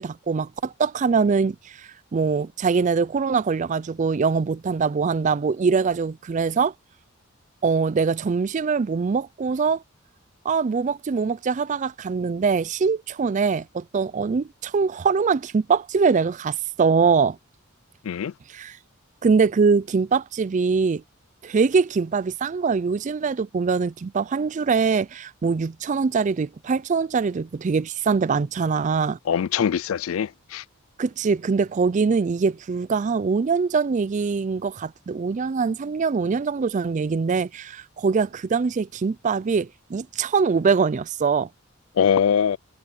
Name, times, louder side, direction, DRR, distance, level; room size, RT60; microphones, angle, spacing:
voice 1, 0.0-6.7 7.6-9.8 10.5-17.4 18.5-18.8 19.2-21.0 21.4-29.2 31.0-41.5, right 5 dB, 35° right, 0.3 m, -23 dB
voice 2, 29.3-30.6 42.0-42.6, left 7 dB, 70° left, 0.4 m, -22 dB
head